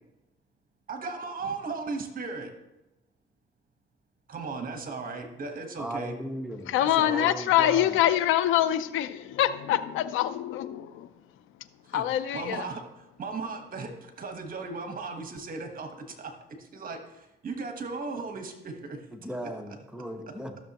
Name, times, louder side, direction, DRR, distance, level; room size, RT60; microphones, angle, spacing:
voice 1, 0.9-2.5 4.3-6.1 6.8-7.3 11.9-12.0 12.3-19.0, right 4 dB, 45° right, 1.3 m, -36 dB
voice 2, 5.8-8.0 19.1-20.6, right 1 dB, 5° right, 1.0 m, -37 dB
voice 3, 6.7-11.1 11.9-12.6, left 12 dB, 90° left, 0.5 m, -25 dB
13.5 x 6.7 x 2.9 m
cardioid pair, 90°, 20 cm